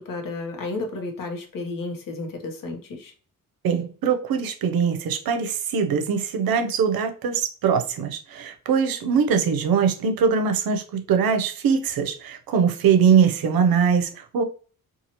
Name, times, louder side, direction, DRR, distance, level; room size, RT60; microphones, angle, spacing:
voice 1, 0.0-3.1, left 3 dB, 60° left, 0.9 m, -32 dB
voice 2, 3.6-14.4, right 6 dB, 70° right, 0.6 m, -22 dB
2.7 x 2.4 x 2.8 m
cardioid pair, 130°, 37 cm